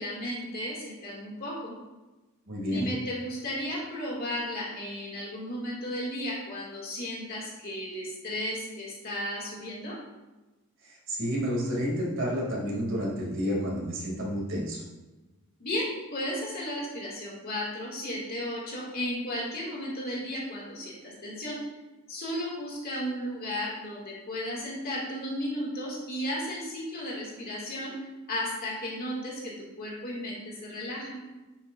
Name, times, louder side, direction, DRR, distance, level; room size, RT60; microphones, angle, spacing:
voice 1, 0.0-1.7 2.7-10.0 15.6-21.6 22.1-27.9 28.3-31.2, equal, 45° left, -4 dB, 2.1 m, -34 dB
voice 2, 2.5-2.9 10.8-14.8, equal, 60° right, -4 dB, 2.4 m, -30 dB
10.0 x 5.5 x 2.5 m, 1.1 s
head